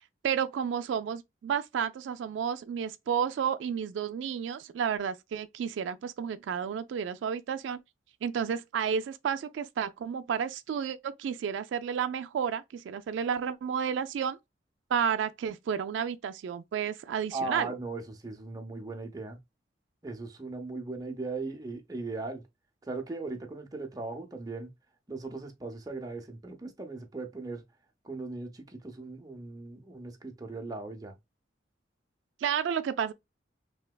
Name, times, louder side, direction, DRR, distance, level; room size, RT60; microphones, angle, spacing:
voice 1, 0.2-7.8 8.2-14.4 14.9-17.7 32.4-33.1, right 7 dB, 85° right, 0.3 m, -31 dB
voice 2, 17.3-19.4 20.0-22.4 22.9-24.7 25.1-27.6 28.0-31.2, right 3 dB, 20° right, 0.6 m, -38 dB
3.3 x 2.8 x 2.2 m
head